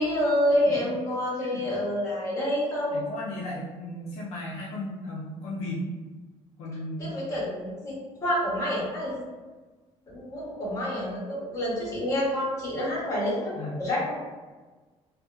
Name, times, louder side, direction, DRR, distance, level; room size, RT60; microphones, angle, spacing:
voice 1, 0.0-3.1 7.0-7.9 8.2-9.2 10.1-14.1, left 1 dB, 30° left, -6 dB, 0.9 m, -28 dB
voice 2, 2.9-6.0 6.6-7.2 13.6-13.8, left 1 dB, 65° left, -5 dB, 0.4 m, -35 dB
2.7 x 2.1 x 2.2 m, 1.3 s
cardioid pair, 170°, 12 cm